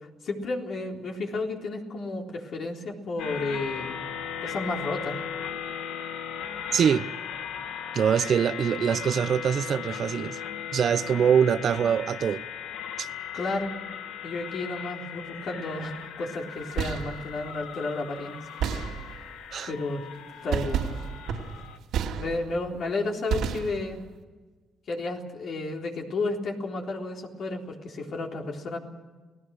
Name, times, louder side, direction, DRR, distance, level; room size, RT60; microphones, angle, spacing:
voice 1, 0.2-4.0 4.4-5.2 13.3-13.7 14.2-18.5 19.6-20.0 20.4-20.9 22.2-24.0 24.9-28.8, left 2 dB, 60° left, 1 dB, 3.8 m, -32 dB
sound 1, 3.2-21.8, left 8 dB, 90° left, 1.8 m, -37 dB
voice 2, 6.7-7.0 7.9-10.4 10.7-12.4 13.0-13.1 19.5-19.7, right 8 dB, 60° right, 15 dB, 0.8 m, -23 dB
sound 2, 16.6-17.3 18.6-19.4 20.5-22.7 23.3-24.1, right 8 dB, 85° right, 2.6 m, -31 dB
29.0 x 17.5 x 6.5 m, 1.3 s
cardioid pair, 90°, 0 cm